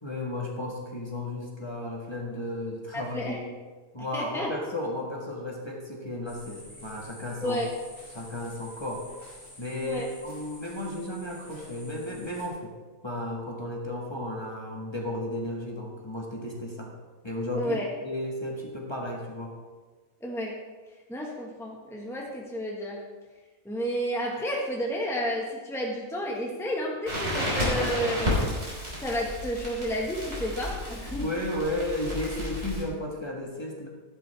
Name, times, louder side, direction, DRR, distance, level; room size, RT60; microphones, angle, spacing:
voice 1, 0.0-3.4 3.9-7.6 8.1-9.1 9.6-12.7 13.0-16.9 17.2-19.5 31.1-33.9, left 1 dB, 20° left, -2 dB, 1.6 m, -34 dB
voice 2, 2.9-3.4 4.0-4.5 7.4-7.7 9.8-10.1 17.6-17.9 20.2-20.6 21.1-23.0 23.6-28.5 29.0-31.3, equal, ahead, -2 dB, 1.5 m, -31 dB
sound 1, 6.3-12.5, left 1 dB, 40° left, 4.8 m, -49 dB
Crackle, 27.1-32.8, left 1 dB, 50° right, 4.4 m, -31 dB
13.0 x 11.5 x 3.5 m, 1.3 s
omnidirectional pair, 1.4 m